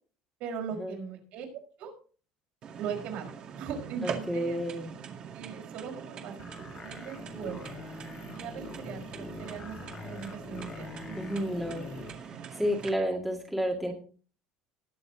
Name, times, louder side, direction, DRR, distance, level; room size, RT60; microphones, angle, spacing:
voice 1, 0.4-1.5 1.8-1.9 2.8-4.6 5.3-7.7 8.3-11.2, right 7 dB, 60° right, 2 dB, 5.2 m, -40 dB
sound 1, 2.6-12.9, right 7 dB, 40° right, 2.1 m, -43 dB
voice 2, 4.0-4.9 11.1-11.9 12.5-13.9, equal, 5° right, 0 dB, 2.0 m, -31 dB
sound 2, 6.4-12.2, left 4 dB, 25° left, 2.4 m, -44 dB
20.0 x 7.0 x 3.9 m, 0.40 s
cardioid pair, 160°, 3 cm